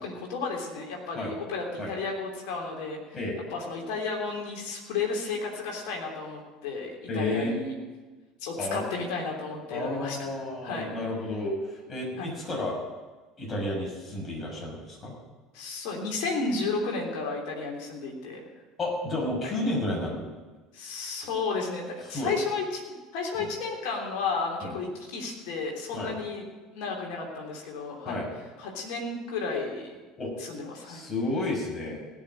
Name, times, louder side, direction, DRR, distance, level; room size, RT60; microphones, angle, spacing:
voice 1, 0.0-3.0 3.5-7.7 8.4-10.3 10.6-10.9 12.2-12.4 15.5-18.4 19.4-19.6 20.7-26.4 26.7-28.2 28.6-29.9 30.4-31.0, left 4 dB, 60° left, 0 dB, 3.3 m, -33 dB
voice 2, 7.1-7.5 8.6-8.8 9.7-12.8 13.4-15.1 18.8-20.3 22.1-22.3 23.4-23.5 24.6-24.7 25.9-26.1 28.1-28.3 30.2-30.3 30.8-32.0, left 1 dB, 30° left, -2 dB, 6.0 m, -31 dB
17.0 x 6.6 x 8.9 m, 1.3 s
figure-of-eight pair, 65°, 0 cm